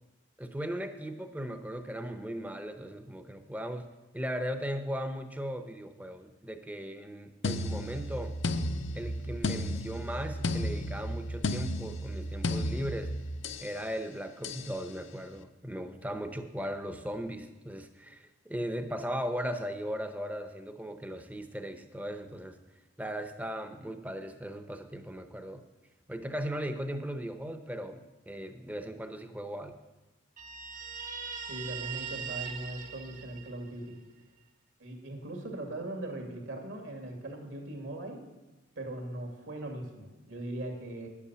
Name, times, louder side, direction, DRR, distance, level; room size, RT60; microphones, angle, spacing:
voice 1, 0.4-3.9 4.1-8.4 8.9-13.1 13.6-22.6 23.0-25.6 26.1-29.8, equal, 10° right, 8 dB, 0.7 m, -37 dB
sound 1, 7.4-13.7 14.4-14.7, left 1 dB, 70° left, 0.7 m, -33 dB
Guitar, 30.4-33.9, right 7 dB, 40° right, 1.0 m, -40 dB
voice 2, 31.5-33.9 34.8-38.2 38.8-41.1, right 1 dB, 75° right, 3 dB, 2.3 m, -39 dB
10.0 x 8.5 x 6.9 m, 1.1 s
head